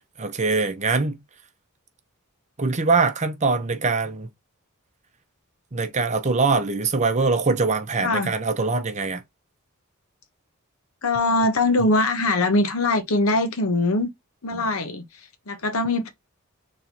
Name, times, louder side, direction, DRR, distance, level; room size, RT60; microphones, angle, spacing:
voice 1, 0.2-1.2 2.6-4.3 5.7-9.2 14.5-14.6, right 4 dB, 35° right, 0.7 m, -23 dB
voice 2, 8.0-8.3 11.0-14.1 14.4-16.1, left 2 dB, 75° left, 0.9 m, -22 dB
4.2 x 3.1 x 2.8 m
head